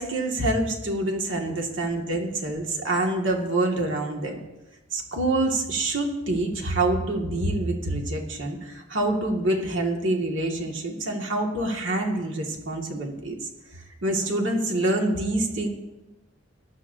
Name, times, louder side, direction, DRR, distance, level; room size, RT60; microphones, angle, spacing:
voice 1, 0.0-4.4 4.9-13.3 14.0-15.7, right 2 dB, 70° right, 1 dB, 2.1 m, -26 dB
19.5 x 11.0 x 2.7 m, 0.99 s
head